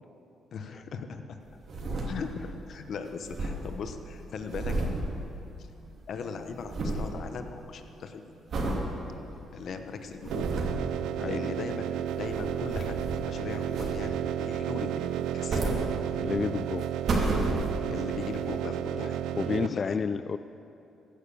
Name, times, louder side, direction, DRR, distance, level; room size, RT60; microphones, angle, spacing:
voice 1, 0.5-1.4 2.1-4.9 5.6-5.7 6.1-8.3 9.5-10.5 11.2-13.0 13.3-15.8 17.9-19.2 19.6-20.0, left 5 dB, 60° left, 7 dB, 1.0 m, -39 dB
sound 1, 1.4-2.6 2.8-2.9 3.1-5.9 6.2-7.2 7.6-7.9 8.5-8.9 9.4-9.5 10.0-10.9 11.9-13.3 13.7-14.3 15.1-16.4 16.8-18.0 18.6-18.7, right 2 dB, 55° right, 2.6 m, -32 dB
sound 2, 10.3-19.7, right 10 dB, 90° right, 0.5 m, -32 dB
voice 2, 16.2-16.9 19.3-20.4, left 5 dB, 40° left, 13 dB, 0.4 m, -30 dB
15.5 x 9.9 x 7.0 m, 2.8 s
cardioid pair, 90°, 0 cm